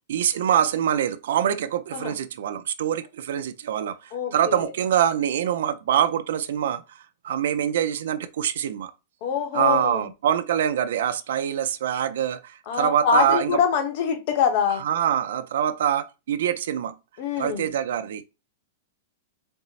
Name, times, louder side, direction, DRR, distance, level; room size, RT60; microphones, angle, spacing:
voice 1, 0.1-7.0 7.2-8.9 9.5-13.6 14.8-16.9 17.4-18.2, right 10 dB, 70° right, 0.4 m, -24 dB
voice 2, 4.1-4.7 9.2-10.1 12.7-14.8 17.2-17.7, left 7 dB, 40° left, 0.8 m, -24 dB
4.3 x 2.0 x 4.0 m
supercardioid pair, 170°, 0 cm